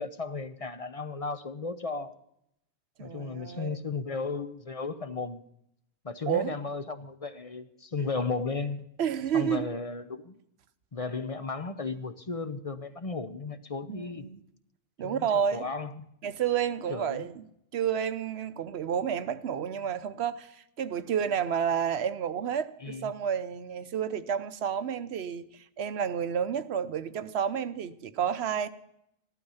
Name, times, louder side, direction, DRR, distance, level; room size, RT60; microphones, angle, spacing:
voice 1, 0.0-2.2 3.0-5.4 6.0-8.8 9.3-10.4 10.9-14.3 15.0-16.1 16.9-17.3 22.8-23.1, left 4 dB, 40° left, 0.8 m, -35 dB
voice 2, 3.0-3.8 6.3-6.5 9.0-9.7 13.9-14.4 15.0-15.7 16.2-17.4 17.7-28.7, right 8 dB, 90° right, 1.0 m, -30 dB
15.0 x 12.0 x 5.6 m
omnidirectional pair, 1.0 m